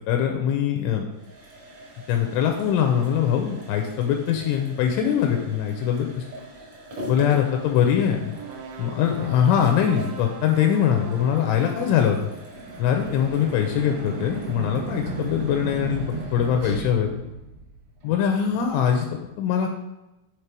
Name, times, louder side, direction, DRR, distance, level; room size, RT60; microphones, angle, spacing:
voice 1, 0.1-1.1 2.1-6.3 7.1-8.4 8.8-12.3 12.8-17.1 18.0-19.7, left 8 dB, 85° left, 3 dB, 2.9 m, -22 dB
sound 1, 1.1-18.8, equal, 55° right, 2.0 m, -43 dB
sound 2, 8.3-12.3, right 6 dB, 90° right, 3.3 m, -41 dB
sound 3, 12.2-17.9, right 2 dB, 75° right, 2.2 m, -34 dB
8.1 x 3.2 x 4.5 m, 0.96 s
omnidirectional pair, 5.7 m